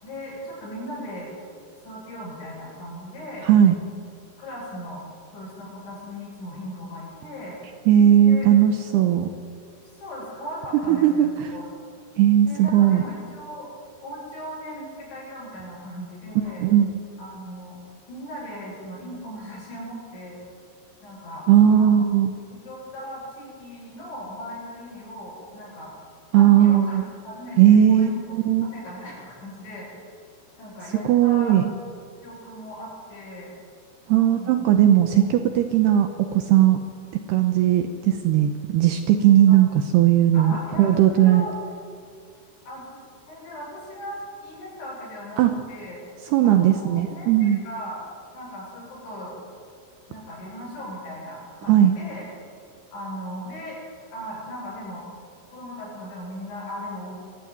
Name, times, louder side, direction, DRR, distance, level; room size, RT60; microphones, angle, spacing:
voice 1, 0.0-1.3 1.8-3.5 4.4-5.0 5.3-7.6 8.2-8.5 9.9-11.7 12.5-13.7 14.0-16.7 17.2-17.8 18.1-20.4 21.0-22.0 22.6-25.9 26.3-27.0 27.2-28.2 28.6-29.9 30.6-31.6 32.2-33.5 34.2-34.7 35.2-35.3 39.5-39.6 40.3-41.6 42.7-43.0 43.3-46.0 46.4-48.0 48.3-49.4 50.1-52.3 52.9-53.8 54.1-55.1 55.5-57.1, equal, 80° left, -10 dB, 10.5 m, -38 dB
voice 2, 3.4-3.7 7.9-9.3 10.9-11.5 12.2-13.0 16.6-16.9 21.5-22.3 26.3-27.0 27.6-28.7 31.0-31.6 34.1-36.8 37.3-40.5 40.8-41.5 45.4-45.5 46.3-47.6 51.7-52.0, right 10 dB, 80° right, 7 dB, 2.5 m, -17 dB
22.5 x 15.0 x 9.4 m, 2.3 s
omnidirectional pair, 5.5 m